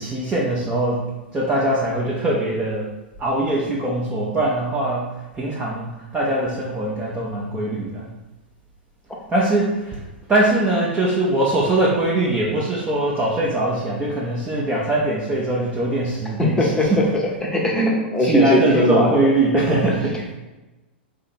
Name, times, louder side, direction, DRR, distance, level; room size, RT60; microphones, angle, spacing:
voice 1, 0.0-2.9 3.2-8.1 9.3-10.0 10.3-17.1 18.2-20.3, right 2 dB, 15° right, -6 dB, 0.7 m, -22 dB
voice 2, 16.4-17.0 17.4-19.3, left 1 dB, 10° left, -1 dB, 0.9 m, -19 dB
4.0 x 2.8 x 4.3 m, 1.1 s
figure-of-eight pair, 95°, 6 cm